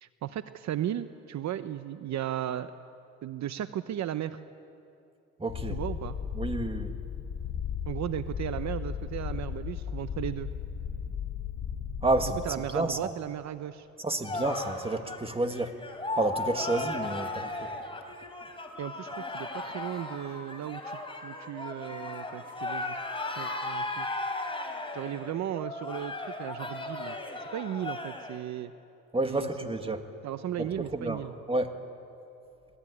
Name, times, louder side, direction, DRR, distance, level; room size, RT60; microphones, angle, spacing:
voice 1, 0.0-2.7 3.2-4.4 5.7-6.1 7.9-10.5 12.4-13.9 18.8-24.1 24.9-27.2 27.5-28.7 29.3-29.5 30.2-31.3, right 11 dB, 65° right, 11 dB, 0.8 m, -35 dB
voice 2, 5.4-5.8 6.3-7.0 12.0-12.4 12.7-13.1 14.0-15.8 16.1-17.7 29.1-30.0 30.6-31.2 31.5-31.7, right 2 dB, 20° right, 6 dB, 2.1 m, -30 dB
Purr, 5.5-12.5, left 8 dB, 70° left, 3.9 m, -35 dB
sound 1, 14.2-28.4, left 2 dB, 15° left, 3.8 m, -36 dB
27.5 x 19.5 x 9.9 m, 2.7 s
cardioid pair, 90°, 30 cm